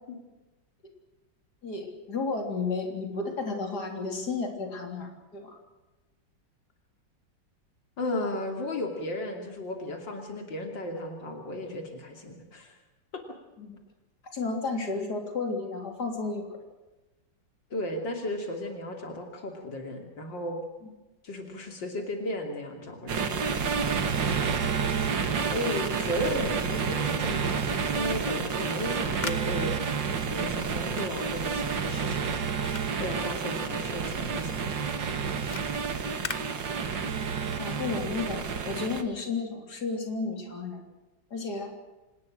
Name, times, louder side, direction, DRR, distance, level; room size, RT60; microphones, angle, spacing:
voice 1, 1.6-5.6 13.6-13.8 14.3-16.5 20.8-20.9 37.6-40.8 41.3-41.7, left 4 dB, 60° left, 3 dB, 4.0 m, -32 dB
voice 2, 8.0-12.8 17.7-20.6 21.2-23.3 23.8-24.6 25.4-29.8 30.3-32.3 33.0-34.8, left 1 dB, 90° left, 3 dB, 3.6 m, -35 dB
sound 1, 23.1-39.0, right 6 dB, 85° right, 2.5 m, -30 dB
sound 2, 28.6-34.0 34.3-37.2, left 4 dB, 30° left, 1.0 m, -43 dB
26.5 x 19.5 x 6.4 m, 1.1 s
omnidirectional pair, 1.9 m